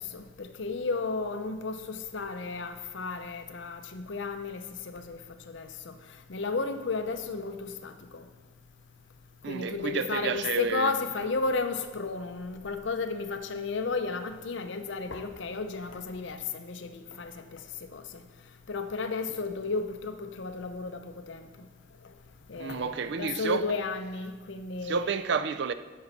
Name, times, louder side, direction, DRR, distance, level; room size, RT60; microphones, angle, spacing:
voice 1, 0.0-5.2 5.5-5.9 6.3-8.2 9.5-17.6 17.9-18.2 18.7-21.5 22.5-25.1, left 4 dB, 60° left, 0.6 m, -33 dB
voice 2, 9.4-10.9 22.6-23.7 24.8-25.7, right 5 dB, 55° right, 0.4 m, -30 dB
9.4 x 6.9 x 4.1 m
head